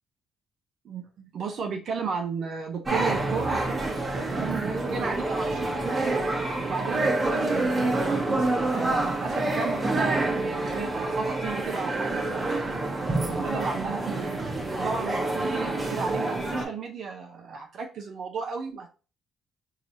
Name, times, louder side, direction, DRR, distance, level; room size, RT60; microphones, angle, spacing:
voice 1, 0.8-6.2 6.6-14.2 14.8-18.9, right 5 dB, 65° right, 3 dB, 0.6 m, -34 dB
sound 1, 2.9-16.6, right 2 dB, 30° right, 1.0 m, -27 dB
4.6 x 2.8 x 2.7 m, 0.34 s
cardioid pair, 90°, 0 cm